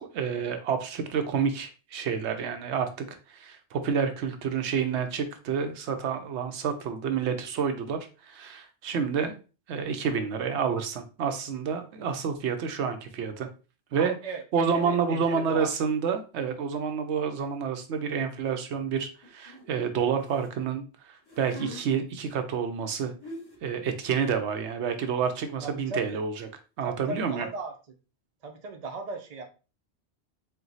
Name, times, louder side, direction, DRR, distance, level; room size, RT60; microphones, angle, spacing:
voice 1, 0.1-8.0 8.3-9.3 9.7-13.5 13.9-14.1 14.5-20.8 21.1-23.1 23.6-26.5 26.8-27.5, right 6 dB, 80° right, 7 dB, 0.9 m, -29 dB
voice 2, 14.0-15.7 25.6-26.2 26.8-27.7 28.4-29.4, right 3 dB, 40° right, 4 dB, 0.7 m, -37 dB
sound 1, 18.4-18.6 19.2-20.5 21.2-21.8 22.8-22.9 23.2-23.7, equal, 20° left, 1.2 m, -43 dB
4.4 x 2.2 x 3.9 m, 0.33 s
omnidirectional pair, 1.1 m